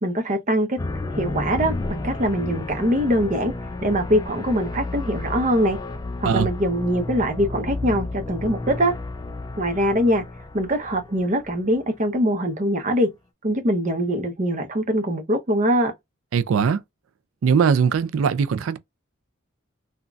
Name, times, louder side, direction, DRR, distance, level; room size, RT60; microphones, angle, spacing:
voice 1, 0.0-0.8 1.1-3.5 3.8-5.8 6.2-8.9 9.6-10.2 10.5-13.1 13.4-15.9, equal, 35° right, 0.7 m, -22 dB
sound 1, 0.8-12.0, left 2 dB, 20° left, 0.3 m, -32 dB
voice 2, 16.3-16.8 17.4-18.8, right 6 dB, 75° right, 0.4 m, -20 dB
3.8 x 2.2 x 2.2 m
head